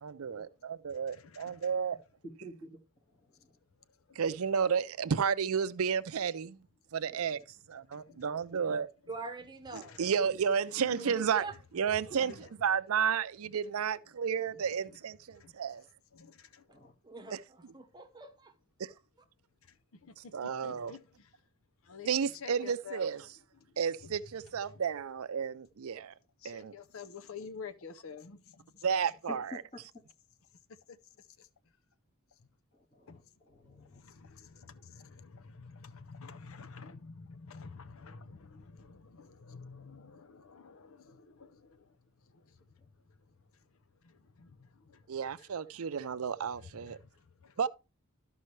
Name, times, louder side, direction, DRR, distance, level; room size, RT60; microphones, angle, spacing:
voice 1, 0.0-2.0 4.2-6.6 6.9-7.4 7.7-8.9 9.7-11.5 11.7-12.3 12.6-15.8 18.8-18.9 20.2-20.9 22.1-23.2 23.8-26.1 26.4-26.7 28.8-29.4 45.1-47.0 47.6-47.7, right 7 dB, 75° right, 0.5 m, -32 dB
voice 2, 0.9-1.8 3.9-4.2 8.0-8.3 9.7-10.1 10.5-11.3 14.9-15.0 15.3-15.6 16.1-16.7 19.9-21.4 21.8-23.1 23.5-23.8 24.0-24.1 24.7-24.8 26.4-28.9 30.9-31.5 33.1-45.5 46.6-47.6, left 5 dB, 70° left, 0.6 m, -51 dB
voice 3, 2.2-3.6 7.0-7.4 10.2-10.4 12.2-12.4 16.7-16.9 29.3-30.0 32.7-34.0 42.8-42.9, left 1 dB, 30° left, 1.9 m, -50 dB
voice 4, 9.1-10.0 10.9-11.0 11.4-11.5 12.2-12.3 17.0-18.5 18.8-18.9, right 3 dB, 20° right, 0.9 m, -44 dB
13.0 x 5.5 x 3.2 m
head